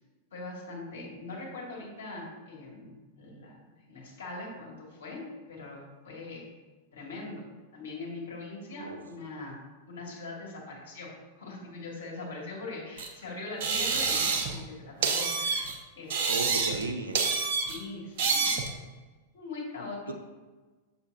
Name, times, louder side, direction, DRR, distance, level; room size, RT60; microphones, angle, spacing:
voice 1, 0.3-6.5 6.9-7.4 7.7-9.6 9.9-16.6 17.5-18.5 19.3-20.1, left 2 dB, 70° left, -2 dB, 2.2 m, -41 dB
sound 1, 13.0-13.1 13.6-14.6 15.0-15.7 16.1-16.9 17.1-17.8 18.2-18.7, right 5 dB, 55° right, 1.0 m, -28 dB
voice 2, 16.3-17.2 20.1-20.2, right 3 dB, 80° right, 5 dB, 0.8 m, -34 dB
7.2 x 7.1 x 2.8 m, 1.3 s
figure-of-eight pair, 95°, 0 cm